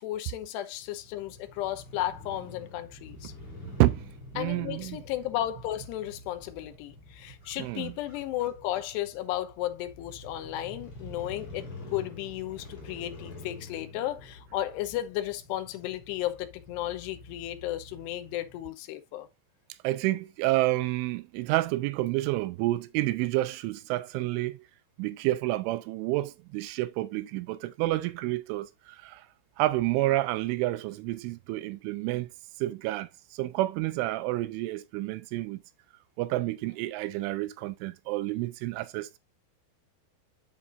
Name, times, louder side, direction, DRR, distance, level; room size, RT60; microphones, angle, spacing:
voice 1, 0.0-3.3 4.4-19.3, left 13 dB, 75° left, 2.7 m, -34 dB
Crow / Motorcycle, 0.7-18.6, left 2 dB, 35° left, 4.2 m, -47 dB
voice 2, 4.3-5.0 7.6-7.9 19.8-24.6 25.0-29.3 29.6-32.3 32.6-35.6 36.2-39.2, right 17 dB, 85° right, 3.1 m, -29 dB
8.4 x 8.0 x 2.5 m
omnidirectional pair, 5.5 m